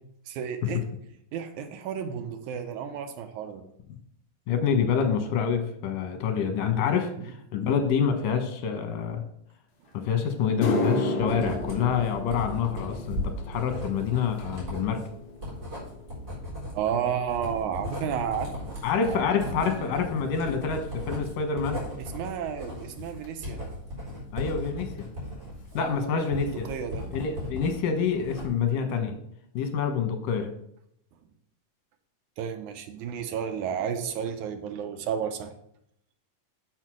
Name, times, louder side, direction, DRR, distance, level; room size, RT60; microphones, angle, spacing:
voice 1, 0.3-0.8 1.3-3.6 7.2-7.3 16.7-20.0 22.0-23.6 25.7-27.0 32.4-35.5, right 8 dB, 75° right, 7 dB, 2.1 m, -32 dB
voice 2, 4.5-9.2 9.9-15.0 18.8-21.8 24.3-25.1 25.7-26.7 27.1-29.2 29.5-30.5, left 6 dB, 90° left, 6 dB, 2.8 m, -27 dB
sound 1, 9.9-10.0 10.4-18.9 19.2-19.6 20.4-20.5 23.2-23.3 25.0-25.1 25.3-25.5 25.8-26.3 26.7-26.8 27.4-27.5, left 2 dB, 65° left, 2.6 m, -34 dB
Writing, 11.2-27.7 28.0-28.8, left 1 dB, 20° right, 4.3 m, -37 dB
6.6 x 6.2 x 6.1 m, 0.73 s
omnidirectional pair, 3.7 m